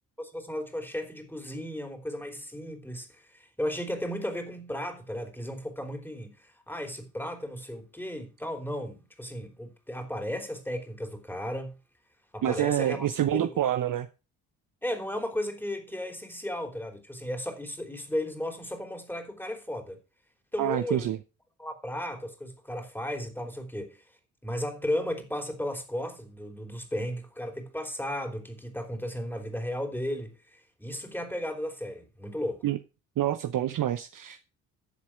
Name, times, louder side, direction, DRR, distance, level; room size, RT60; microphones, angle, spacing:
voice 1, 0.2-11.8 12.3-13.5 14.8-20.0 20.5-21.1 21.6-24.0 24.4-32.6, left 1 dB, 5° left, 3.2 m, -35 dB
voice 2, 12.4-14.1 20.6-21.2 32.6-32.8 33.2-34.5, right 11 dB, 40° right, 0.8 m, -27 dB
12.0 x 7.3 x 4.7 m
hypercardioid pair, 45°, 49 cm